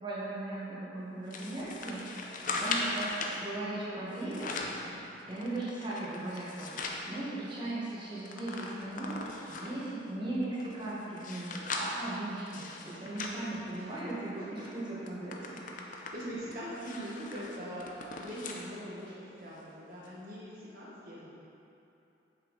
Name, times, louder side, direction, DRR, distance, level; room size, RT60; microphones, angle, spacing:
voice 1, 0.0-2.1 2.5-4.6 5.2-15.6, right 2 dB, 25° right, -8 dB, 1.4 m, -38 dB
sound 1, 1.3-3.4 4.1-4.8 5.3-7.0 7.5-7.6 7.8-9.8 10.4-14.2 14.6-14.7 15.1-18.7 19.1-19.2 20.0-20.1, left 3 dB, 40° left, 0.6 m, -39 dB
voice 2, 15.9-21.3, equal, 50° right, -8 dB, 1.1 m, -42 dB
7.9 x 5.8 x 4.0 m, 2.8 s
head